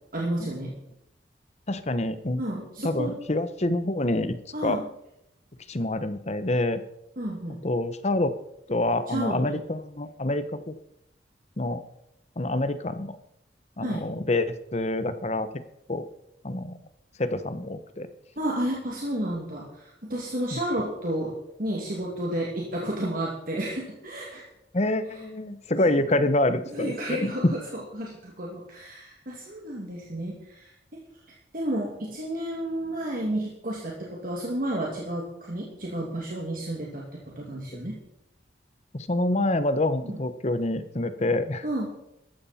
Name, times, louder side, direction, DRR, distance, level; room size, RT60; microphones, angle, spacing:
voice 1, 0.1-0.7 2.4-3.1 4.5-4.9 7.2-7.6 9.1-9.6 13.8-14.1 18.4-24.4 26.7-31.0 31.5-38.0 40.0-40.2 41.6-41.9, right 1 dB, 50° right, -3 dB, 2.5 m, -31 dB
voice 2, 1.7-2.4 2.8-4.4 4.6-4.8 5.7-6.8 7.6-8.3 8.7-10.7 11.6-11.8 12.4-13.2 13.8-15.5 15.9-16.0 16.4-16.8 17.2-18.1 20.5-20.6 24.7-27.5 38.9-41.6, left 2 dB, 35° left, 12 dB, 0.9 m, -26 dB
14.5 x 13.0 x 4.3 m, 0.81 s
head